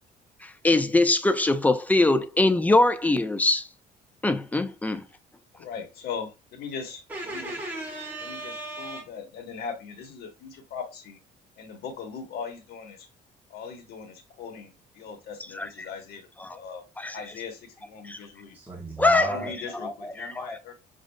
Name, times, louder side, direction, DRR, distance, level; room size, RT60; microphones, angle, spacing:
voice 1, 0.4-3.7 4.2-5.0 15.6-15.7 16.4-16.6 17.0-17.1 18.0-18.2 19.0-19.3 19.8-19.9 20.2-20.6, left 2 dB, 10° left, 0.4 m, -22 dB
voice 2, 5.6-7.6 8.2-11.2 11.6-13.1 13.5-16.8 17.1-18.6 19.2-20.7, left 6 dB, 70° left, 1.2 m, -39 dB
voice 3, 7.1-9.0 18.5-19.5, right 2 dB, 10° right, 1.0 m, -35 dB
6.2 x 2.5 x 2.2 m
cardioid pair, 110°, 17 cm